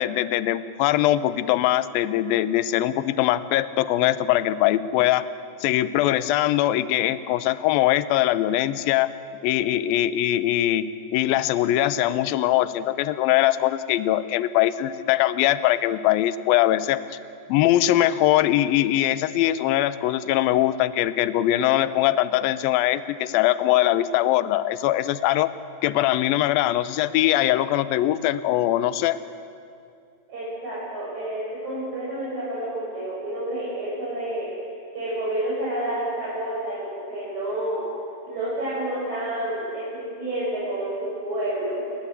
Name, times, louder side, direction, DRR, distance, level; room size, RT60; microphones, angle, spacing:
voice 1, 0.0-5.3 5.6-9.1 9.4-10.9 11.1-17.0 17.5-25.5 25.8-29.2, left 13 dB, 75° left, 13 dB, 2.4 m, -22 dB
voice 2, 30.3-34.5 34.9-37.8 38.2-41.8, right 1 dB, 45° right, -8 dB, 8.3 m, -29 dB
28.0 x 24.0 x 8.3 m, 2.4 s
omnidirectional pair, 4.8 m